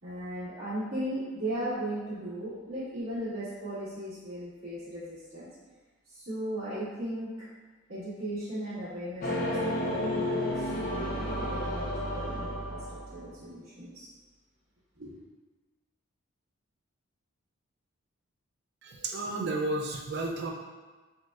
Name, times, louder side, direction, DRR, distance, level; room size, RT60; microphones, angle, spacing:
voice 1, 0.0-5.5 6.1-7.3 7.9-12.8 13.1-14.1 15.0-15.1, right 1 dB, 90° right, -16 dB, 1.5 m, -37 dB
sound 1, 9.2-13.3, left 1 dB, 40° left, 0.4 m, -32 dB
voice 2, 18.8-20.5, right 2 dB, 50° right, 2 dB, 0.3 m, -32 dB
4.3 x 2.2 x 2.3 m, 1.3 s
head